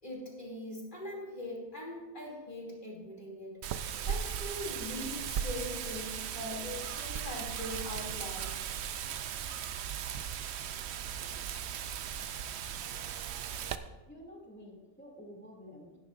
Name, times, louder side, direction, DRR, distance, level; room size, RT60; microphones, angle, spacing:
voice 1, 0.0-3.6 4.1-8.5, left 1 dB, 35° left, -3 dB, 3.0 m, -41 dB
Wind, 3.6-13.8, right 8 dB, 65° right, 0.7 m, -37 dB
voice 2, 14.1-16.0, equal, 5° left, -2 dB, 2.4 m, -50 dB
17.5 x 9.8 x 2.6 m, 1.2 s
omnidirectional pair, 1.5 m